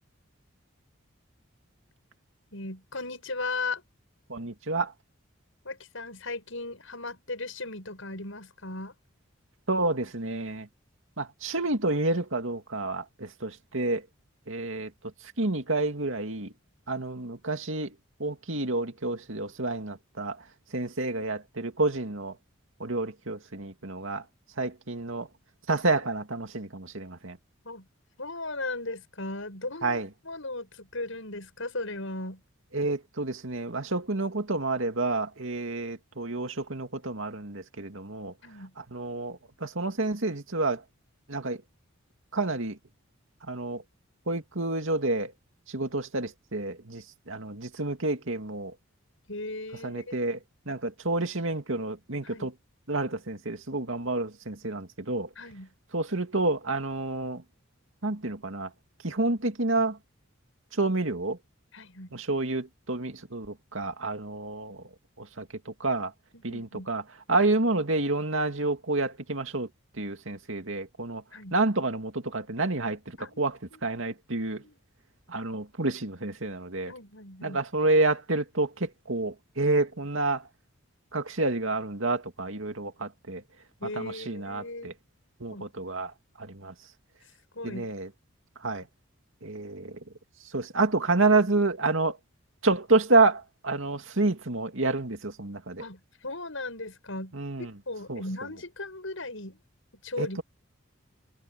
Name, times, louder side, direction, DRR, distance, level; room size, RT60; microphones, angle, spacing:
voice 1, 2.5-3.8 5.6-8.9 27.6-27.9 28.2-32.4 38.4-38.7 49.3-50.1 52.2-52.5 55.4-55.7 61.7-62.1 66.3-66.9 71.3-71.6 73.2-73.4 73.7-73.8 74.6-74.8 76.9-77.6 83.8-84.9 85.5-85.7 87.5-87.9 95.8-99.6 100.0-100.4, left 2 dB, 70° left, 7.9 m, -37 dB
voice 2, 4.3-4.9 9.7-10.7 11.2-14.0 14.5-14.9 15.4-16.5 16.9-17.9 18.2-20.4 20.7-22.3 22.8-24.2 24.6-25.3 25.7-27.4 29.8-30.1 32.7-38.3 38.9-40.8 41.3-41.6 42.3-42.8 43.5-43.8 44.3-45.3 45.7-48.7 49.8-50.4 50.7-52.5 52.9-55.3 55.9-57.4 58.0-58.7 59.0-60.0 60.8-61.4 62.1-64.8 65.2-66.1 66.4-67.0 67.3-69.7 70.0-71.2 71.5-74.6 75.3-76.9 77.4-80.4 81.1-83.4 84.0-84.9 85.4-86.1 86.4-86.7 87.6-88.1 88.6-88.8 89.4-90.0 90.5-92.2 92.6-95.8 97.3-97.7 98.1-98.2 100.2-100.4, right 2 dB, 70° right, 2.4 m, -29 dB
head